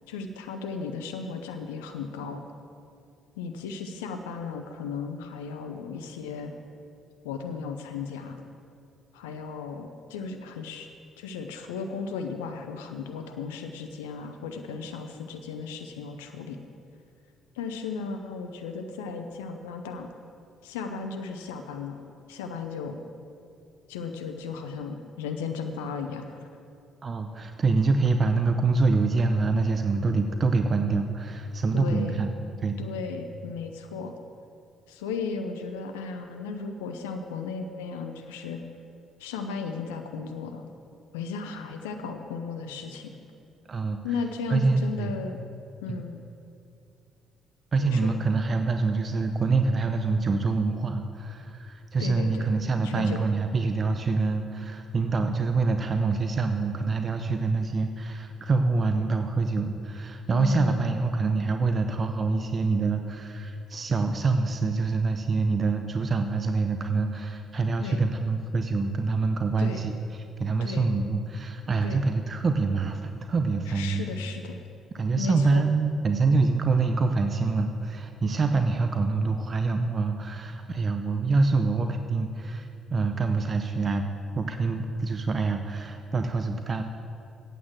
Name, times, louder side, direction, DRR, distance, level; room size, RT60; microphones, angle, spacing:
voice 1, 0.1-2.4 3.4-6.5 7.2-8.4 9.1-10.9 11.2-16.6 17.5-20.1 20.6-22.0 22.3-23.0 23.9-26.5 31.7-32.2 32.8-34.1 34.9-38.6 39.2-40.6 41.1-43.2 44.0-45.4 45.8-46.2 47.8-48.1 52.0-52.5 52.8-53.2 60.3-60.9 67.8-68.0 69.6-69.9 70.6-70.8 71.8-72.0 73.7-74.6 75.2-75.7, left 5 dB, 85° left, 6 dB, 0.6 m, -35 dB
voice 2, 27.0-32.3 32.6-32.8 43.7-44.0 44.5-45.1 45.9-46.0 47.7-74.1 74.9-84.1 84.3-86.8, right 3 dB, 45° right, 6 dB, 0.7 m, -26 dB
9.2 x 8.6 x 7.4 m, 2.6 s
hypercardioid pair, 50°, 0 cm